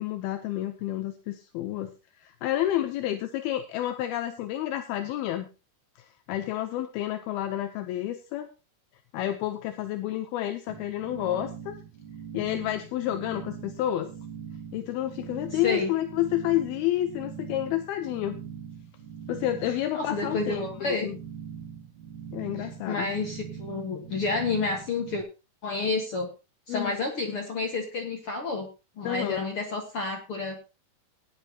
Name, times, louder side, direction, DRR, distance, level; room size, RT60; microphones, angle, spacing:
voice 1, 0.0-1.9 2.2-5.5 6.3-8.5 9.1-11.8 12.3-14.1 14.7-18.4 19.3-21.2 22.3-23.1 26.7-27.0 29.0-29.4, left 13 dB, 80° left, 8 dB, 2.6 m, -30 dB
sound 1, 10.7-25.2, right 7 dB, 55° right, 2.7 m, -42 dB
voice 2, 19.6-21.1 22.6-25.2 25.6-26.3 26.7-28.7 29.0-30.6, left 3 dB, 55° left, 2 dB, 1.6 m, -30 dB
18.0 x 9.9 x 2.9 m, 0.29 s
omnidirectional pair, 4.4 m